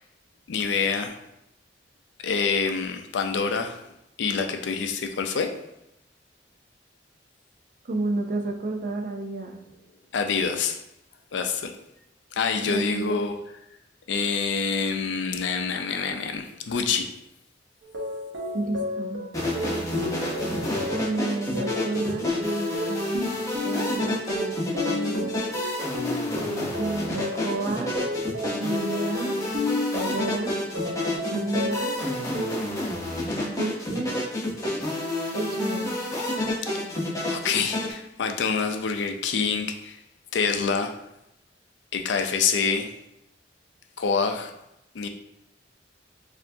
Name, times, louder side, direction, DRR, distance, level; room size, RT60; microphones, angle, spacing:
voice 1, 0.5-1.1 2.2-3.8 4.2-5.5 10.1-10.8 11.3-11.7 12.4-13.3 14.1-17.1 37.2-40.0 40.3-40.9 41.9-42.9 44.0-44.5 44.9-45.1, left 5 dB, 70° left, 5 dB, 0.4 m, -26 dB
voice 2, 7.8-9.6 12.6-13.2 18.5-19.2 20.9-25.3 26.8-27.9 28.6-29.3 29.9-30.6 31.3-32.0 33.5-34.2 35.3-35.9, right 2 dB, 45° right, 4 dB, 0.4 m, -31 dB
sound 1, 17.8-32.7, left 1 dB, 85° right, 0.8 m, -33 dB
sound 2, 19.3-37.9, left 1 dB, 20° left, 0.8 m, -29 dB
4.3 x 2.5 x 2.7 m, 0.84 s
head